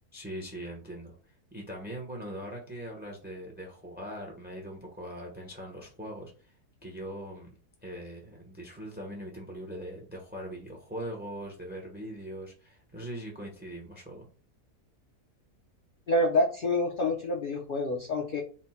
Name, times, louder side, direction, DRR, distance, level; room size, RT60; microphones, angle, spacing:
voice 1, 0.1-1.2 1.5-6.5 6.8-7.5 7.8-14.3, right 1 dB, 10° right, 0 dB, 0.5 m, -41 dB
voice 2, 16.1-18.4, left 1 dB, 55° left, -1 dB, 0.5 m, -27 dB
4.2 x 2.1 x 4.2 m, 0.39 s
omnidirectional pair, 1.7 m